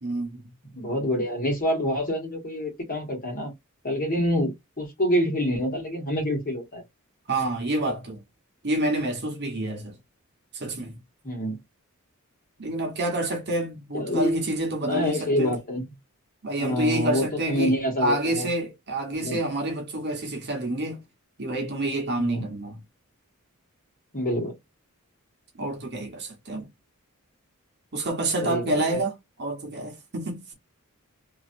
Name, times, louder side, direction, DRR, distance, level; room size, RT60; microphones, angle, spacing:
voice 1, 0.0-0.5 7.3-8.2 8.6-9.9 10.5-11.0 12.6-15.5 16.4-21.0 21.4-22.8 25.6-26.7 27.9-30.4, right 1 dB, 50° right, 1.1 m, -28 dB
voice 2, 0.7-3.5 3.8-6.8 11.2-11.6 13.9-14.4 14.8-15.9 16.6-18.5 19.2-19.4 22.2-22.5 24.1-24.5 28.4-28.8, equal, 40° left, 1.7 m, -26 dB
3.0 x 2.8 x 2.5 m
head